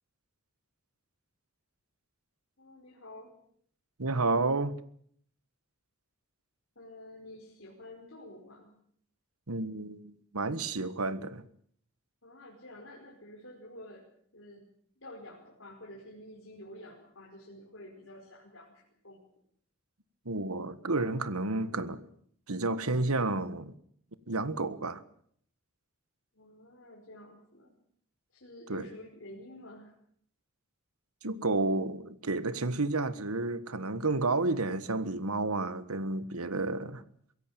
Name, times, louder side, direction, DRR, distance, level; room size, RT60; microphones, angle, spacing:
voice 1, 2.6-3.3 6.7-8.7 12.2-14.1 14.3-14.6 15.0-19.2 26.3-27.7 28.3-29.9, left 1 dB, 60° left, 5.1 m, -49 dB
voice 2, 4.0-4.7 9.5-11.4 20.2-22.0 22.5-23.7 24.3-25.0 28.7-28.9 31.2-37.0, right 2 dB, 85° right, 1.6 m, -31 dB
23.0 x 17.0 x 8.8 m
head